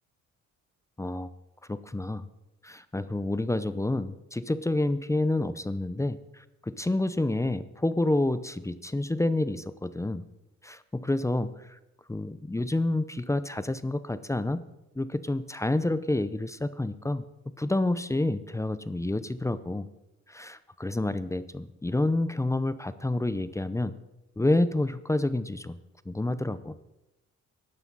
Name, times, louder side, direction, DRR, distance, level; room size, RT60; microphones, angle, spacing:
voice 1, 1.0-1.3 1.7-2.3 2.6-10.2 10.6-11.5 12.1-14.6 15.0-17.2 17.6-19.8 20.3-24.0 24.4-25.8 26.1-26.7, left 2 dB, 10° left, 14 dB, 0.7 m, -28 dB
18.0 x 12.0 x 4.1 m, 0.94 s
cardioid pair, 90°, 30 cm